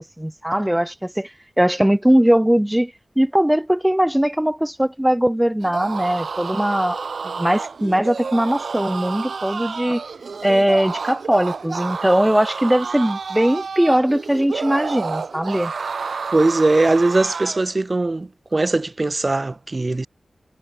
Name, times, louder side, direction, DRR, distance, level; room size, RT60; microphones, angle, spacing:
voice 1, 0.2-1.3 1.6-2.9 3.2-7.0 7.4-10.0 10.4-15.7, right 1 dB, 5° right, 1.3 m, -19 dB
sound 1, 5.6-17.7, right 5 dB, 80° right, 2.0 m, -30 dB
voice 2, 16.3-20.1, right 2 dB, 35° right, 5.8 m, -20 dB
wide cardioid pair, 100°, 0 cm